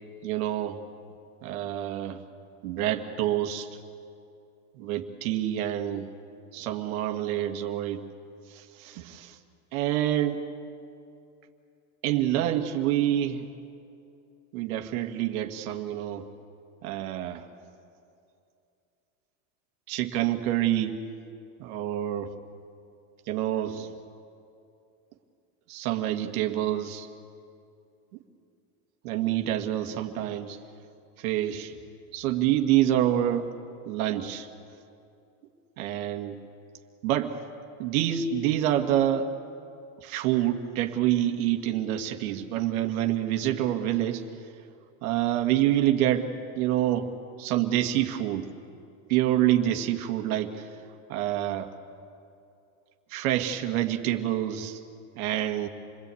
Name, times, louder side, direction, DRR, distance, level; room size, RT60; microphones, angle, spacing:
voice 1, 0.2-0.8 1.4-2.2 2.6-3.7 4.8-6.1 6.5-8.0 8.5-9.4 9.7-10.5 12.0-13.5 14.5-16.3 16.8-17.4 19.9-21.0 21.6-22.3 23.3-23.9 25.7-27.1 29.0-30.6 31.2-31.7 32.1-33.5 33.9-34.5 35.8-36.4 37.0-37.4 37.8-39.3 40.0-44.2 45.0-46.3 46.6-47.1 47.4-48.5 49.1-50.7 51.1-51.7 53.1-54.8 55.1-55.7, right 12 dB, 70° right, 4 dB, 1.9 m, -27 dB
28.0 x 19.5 x 8.5 m, 2.6 s
supercardioid pair, 125°, 45 cm